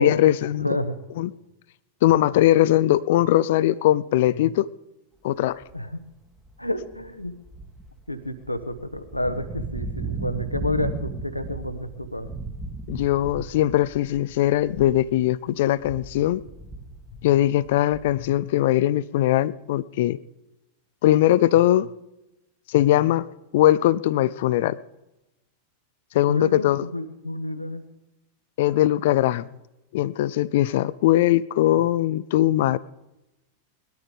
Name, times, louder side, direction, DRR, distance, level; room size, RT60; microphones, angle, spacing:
voice 1, 0.0-0.7 1.2-1.3 2.0-4.7 5.2-5.6 12.9-16.4 17.2-20.2 21.0-21.9 22.7-24.8 26.1-26.9 28.6-29.4 29.9-32.8, left 14 dB, 55° left, 17 dB, 0.4 m, -20 dB
voice 2, 0.6-1.0 5.7-6.0 6.6-7.4 8.1-12.3 26.2-27.8, left 1 dB, 85° left, 10 dB, 1.1 m, -29 dB
sound 1, 5.6-5.9 6.4-15.2 15.5-18.4, right 3 dB, 5° right, 1.5 m, -36 dB
19.5 x 12.5 x 5.1 m, 0.95 s
figure-of-eight pair, 90°, 0 cm